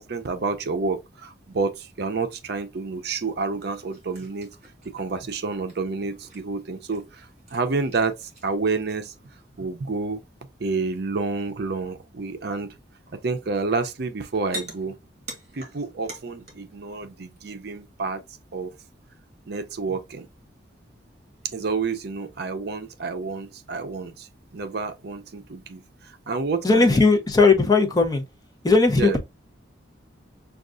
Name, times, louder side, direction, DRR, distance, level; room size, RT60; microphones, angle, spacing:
voice 1, 0.0-4.5 4.8-9.1 9.6-10.2 10.6-12.7 13.1-15.0 15.5-18.2 18.5-18.7 19.5-20.3 21.4-27.0 29.0-29.2, right 4 dB, 55° right, 0.5 m, -29 dB
sound 1, 3.2-9.7 10.7-11.1 11.4-12.5 13.0-13.9 14.2-16.8 17.0-17.4, right 1 dB, 35° right, 1.7 m, -45 dB
voice 2, 26.6-28.2 28.6-29.2, left 3 dB, 20° left, 0.7 m, -17 dB
6.3 x 2.3 x 2.4 m
head